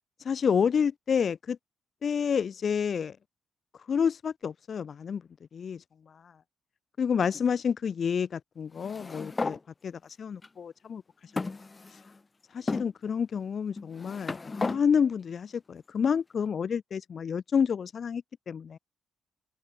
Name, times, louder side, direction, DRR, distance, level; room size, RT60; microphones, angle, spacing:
voice 1, 0.2-1.6 2.0-3.2 3.8-5.2 5.5-6.4 7.0-11.3 11.9-12.0 12.5-18.8, left 7 dB, 50° left, 4.5 m, -29 dB
sound 1, 8.8-9.6 10.4-10.5 11.4-12.2 12.7-12.9 13.8-14.8, left 3 dB, 25° left, 5.2 m, -34 dB
cardioid pair, 90°, 0 cm